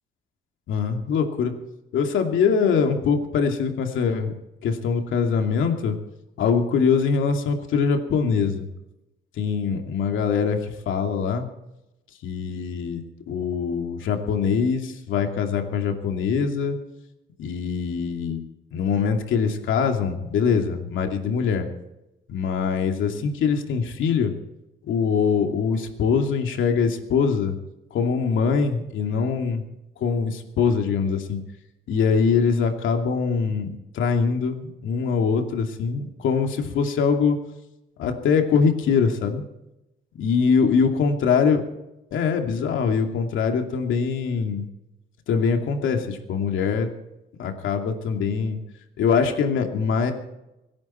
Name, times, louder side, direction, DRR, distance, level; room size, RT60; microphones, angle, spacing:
voice 1, 0.7-1.5 1.9-4.3 4.6-6.0 6.4-8.7 9.4-11.5 12.2-16.8 17.4-18.4 18.7-21.7 22.3-24.3 24.8-27.6 27.9-29.6 30.0-31.4 31.9-37.4 38.0-39.4 40.2-41.6 42.1-44.7 45.3-46.9 47.4-48.6 49.0-50.1, left 6 dB, 80° left, 4 dB, 2.6 m, -23 dB
25.5 x 10.5 x 4.5 m, 0.92 s
cardioid pair, 90°, 20 cm